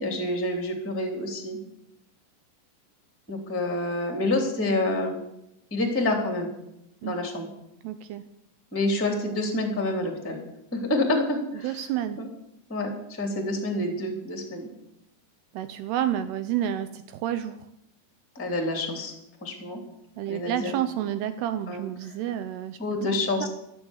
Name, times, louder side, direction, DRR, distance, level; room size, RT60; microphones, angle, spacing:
voice 1, 0.0-1.6 3.3-5.2 5.7-6.5 7.0-7.5 8.7-10.4 10.7-11.7 12.2-12.3 12.7-14.7 18.3-19.1 19.4-19.8 20.3-20.7 21.7-21.8 22.8-23.5, left 2 dB, 5° left, 3 dB, 1.6 m, -27 dB
voice 2, 7.8-8.2 11.6-12.2 15.5-17.6 20.2-23.2, right 11 dB, 80° right, 11 dB, 2.4 m, -30 dB
15.0 x 11.0 x 7.2 m, 0.82 s
omnidirectional pair, 5.3 m